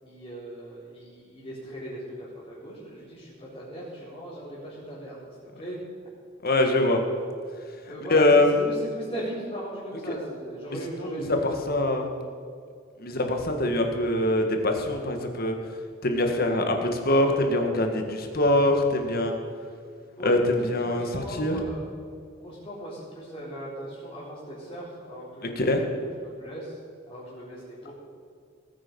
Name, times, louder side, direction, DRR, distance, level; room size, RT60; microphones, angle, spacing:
voice 1, 0.0-5.3 5.6-5.8 7.9-11.8 13.1-13.3 20.2-20.3 20.6-21.9 22.4-25.7 26.0-26.8 27.1-27.9, right 1 dB, 25° left, -10 dB, 4.1 m, -38 dB
voice 2, 6.4-7.0 8.1-8.5 11.0-11.4 11.7-12.1 13.0-15.5 16.0-19.3 20.2-21.6 25.4-25.8, left 1 dB, 50° left, 4 dB, 1.8 m, -23 dB
18.5 x 9.7 x 5.4 m, 2.3 s
head